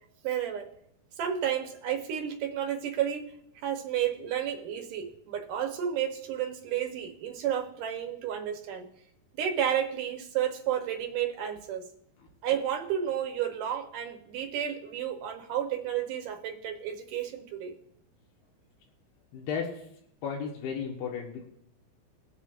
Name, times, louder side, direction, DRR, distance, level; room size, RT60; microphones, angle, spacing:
voice 1, 0.2-0.7 1.2-3.2 3.6-8.9 9.3-11.9 12.4-17.8, right 9 dB, 70° right, 4 dB, 2.1 m, -31 dB
voice 2, 19.3-19.9 20.2-21.4, left 6 dB, 75° left, -2 dB, 3.2 m, -34 dB
21.5 x 7.2 x 2.5 m, 0.72 s
omnidirectional pair, 4.6 m